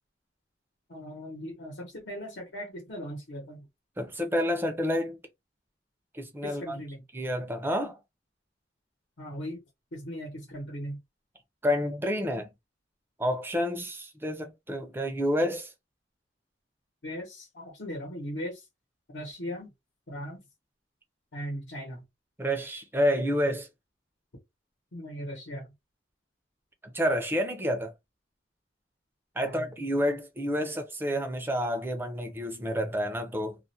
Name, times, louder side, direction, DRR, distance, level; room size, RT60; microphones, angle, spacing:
voice 1, 0.9-3.7 6.4-7.0 9.2-9.6 9.9-11.0 17.0-18.6 19.1-19.7 20.1-20.4 21.3-22.0 24.9-25.7 29.4-29.7, equal, 75° left, 0.9 m, -38 dB
voice 2, 4.0-5.2 6.1-6.8 7.1-8.0 11.6-12.5 13.2-15.7 22.4-23.7 26.8-27.9 29.4-33.6, equal, 10° right, 0.5 m, -29 dB
2.4 x 2.1 x 2.6 m
head